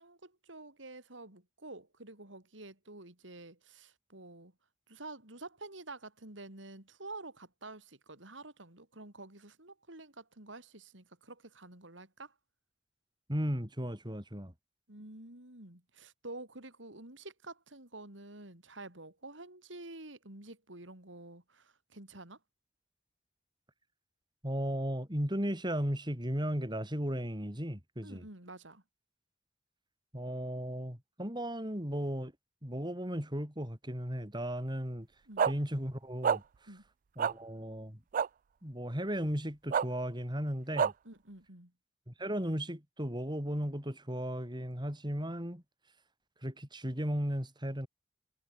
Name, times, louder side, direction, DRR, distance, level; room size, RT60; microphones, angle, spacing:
voice 1, 0.0-4.5 4.9-12.3 14.9-22.4 28.0-28.8 35.3-35.5 36.7-36.8 41.1-41.7, right 2 dB, 85° right, 5.7 m, -49 dB
voice 2, 13.3-14.5 24.4-28.3 30.1-32.3 32.6-35.1 35.5-36.4 37.2-38.0 38.6-40.9 42.1-45.6 46.4-47.9, equal, 25° right, 7.5 m, -35 dB
sound 1, 35.4-35.5 36.2-36.4 37.2-37.3 38.1-38.3 39.7-39.8 40.8-40.9, right 7 dB, 45° right, 0.4 m, -27 dB
head